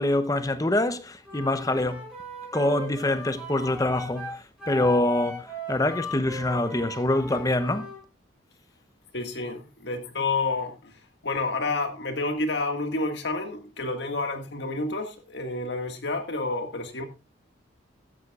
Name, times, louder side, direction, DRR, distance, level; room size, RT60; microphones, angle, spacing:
voice 1, 0.0-2.0 2.5-7.9, left 1 dB, 20° left, 0.8 m, -25 dB
Wind instrument woodwind instrument, 1.2-8.0, left 1 dB, 5° right, 5.9 m, -38 dB
voice 2, 9.1-17.0, left 3 dB, 60° left, 1.8 m, -29 dB
14.5 x 11.5 x 2.4 m
head